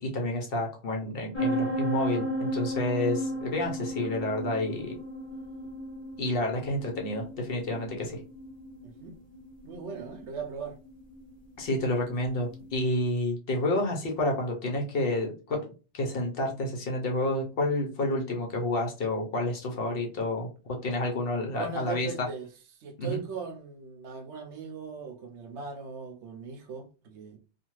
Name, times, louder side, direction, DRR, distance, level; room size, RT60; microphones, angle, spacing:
voice 1, 0.0-4.9 6.2-8.2 11.6-15.6 15.9-22.3 23.0-23.2, left 1 dB, 55° left, 0.9 m, -29 dB
sound 1, 1.3-12.8, equal, 25° left, 0.8 m, -35 dB
voice 2, 8.8-9.2 9.6-10.8 21.5-22.5 22.8-27.4, right 6 dB, 75° right, 0.9 m, -39 dB
2.5 x 2.4 x 3.0 m
omnidirectional pair, 1.2 m